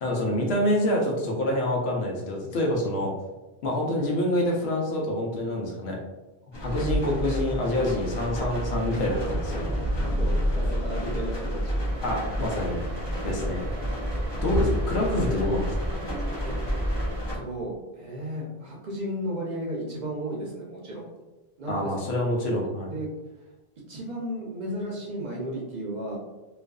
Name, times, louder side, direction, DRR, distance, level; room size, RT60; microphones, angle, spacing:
voice 1, 0.0-3.1 3.6-6.0 6.6-9.7 12.0-12.8 13.2-13.6 14.4-15.7 21.7-22.9, left 1 dB, 85° left, -1 dB, 0.9 m, -26 dB
sound 1, 6.5-17.4, equal, 30° left, 0.6 m, -29 dB
voice 2, 10.2-11.9 13.1-13.4 16.4-16.5 17.3-21.1 21.6-21.9 22.8-23.1 23.9-26.2, right 1 dB, 50° right, -3 dB, 0.6 m, -34 dB
sound 2, 11.9-17.2, right 1 dB, 80° right, 0.9 m, -39 dB
2.5 x 2.3 x 2.2 m, 1.1 s
omnidirectional pair, 1.1 m